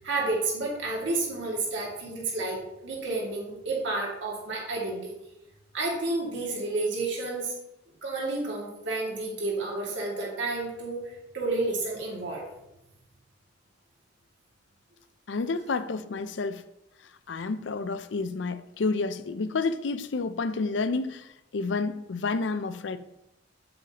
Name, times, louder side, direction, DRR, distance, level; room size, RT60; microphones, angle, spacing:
voice 1, 0.0-5.1 5.7-7.5 8.0-12.4, right 2 dB, 80° right, 2.2 m, -30 dB
voice 2, 15.3-16.6 17.3-23.0, left 3 dB, 75° left, 0.5 m, -30 dB
8.5 x 7.7 x 2.9 m
head